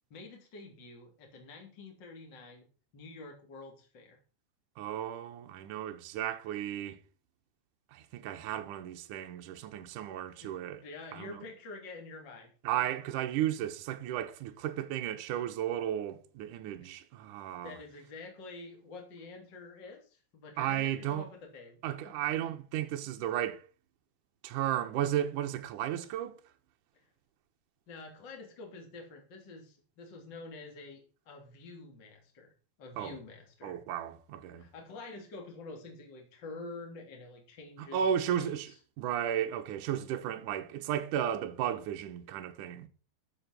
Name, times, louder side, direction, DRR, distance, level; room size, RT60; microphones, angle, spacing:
voice 1, 0.1-2.7 2.9-4.2 10.4-10.5 10.8-12.9 16.8-17.0 17.6-22.1 26.9-27.1 27.9-32.5 32.8-33.8 34.6-38.8, left 3 dB, 30° left, 3.2 m, -48 dB
voice 2, 4.8-7.0 7.9-10.8 11.1-11.4 12.6-17.8 20.6-21.3 21.8-23.6 24.4-26.3 33.0-33.2 33.6-34.6 37.8-38.7 39.0-42.9, right 10 dB, 70° right, 2.0 m, -34 dB
13.5 x 7.0 x 6.0 m
omnidirectional pair, 5.1 m